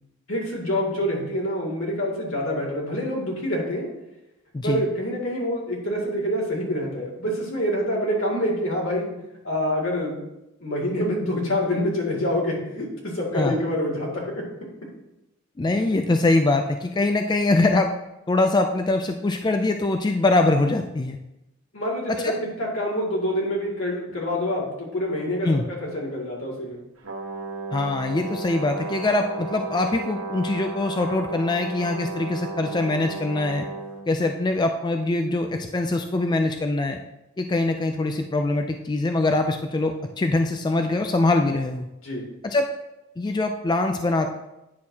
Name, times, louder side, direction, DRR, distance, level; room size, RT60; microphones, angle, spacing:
voice 1, 0.3-3.9 4.6-9.1 9.4-10.2 10.6-14.4 21.7-25.5 25.8-26.8 42.0-42.3, equal, 75° left, -4 dB, 2.3 m, -26 dB
voice 2, 4.5-4.8 13.3-13.6 15.6-17.9 18.3-21.2 22.1-22.4 25.4-25.6 27.7-33.7 34.1-37.0 37.4-41.9 42.4-42.7 43.2-44.3, left 2 dB, 20° left, 5 dB, 0.3 m, -23 dB
Brass instrument, 27.0-34.0, right 3 dB, 85° right, 1.2 m, -34 dB
9.4 x 6.4 x 2.8 m, 0.94 s
head